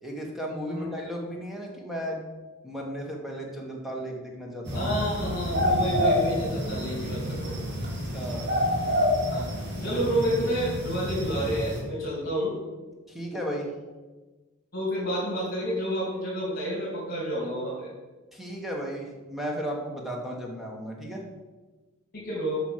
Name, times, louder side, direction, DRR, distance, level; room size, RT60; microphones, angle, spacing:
voice 1, 0.0-2.2 2.6-4.9 7.8-8.5 9.8-10.0 13.1-13.7 18.3-21.2, equal, ahead, -1 dB, 1.5 m, -35 dB
sound 1, 4.6-11.8, equal, 50° right, 2.2 m, -28 dB
voice 2, 4.7-7.6 9.3-9.5 9.8-12.5 14.7-17.9 22.1-22.6, equal, 40° left, -7 dB, 2.9 m, -29 dB
8.2 x 6.0 x 5.8 m, 1.2 s
head